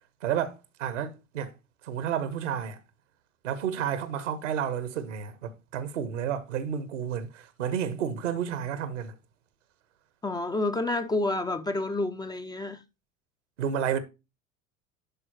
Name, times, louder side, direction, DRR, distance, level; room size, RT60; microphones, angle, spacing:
voice 1, 0.2-1.5 1.8-2.8 3.4-9.1 13.6-14.0, right 8 dB, 70° right, 1.1 m, -31 dB
voice 2, 10.2-12.8, left 2 dB, 10° left, 0.5 m, -29 dB
10.5 x 4.4 x 2.9 m
figure-of-eight pair, 65°, 39 cm